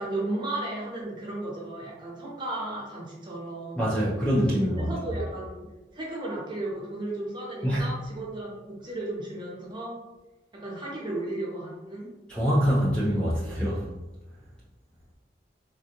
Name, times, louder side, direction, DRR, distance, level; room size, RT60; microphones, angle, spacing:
voice 1, 0.0-3.8 4.8-5.7 5.9-10.0 10.5-12.1, right 2 dB, 25° right, -4 dB, 0.8 m, -34 dB
voice 2, 3.8-4.9 7.6-7.9 12.3-13.9, equal, 5° left, -7 dB, 0.4 m, -24 dB
3.4 x 2.3 x 2.8 m, 1.1 s
head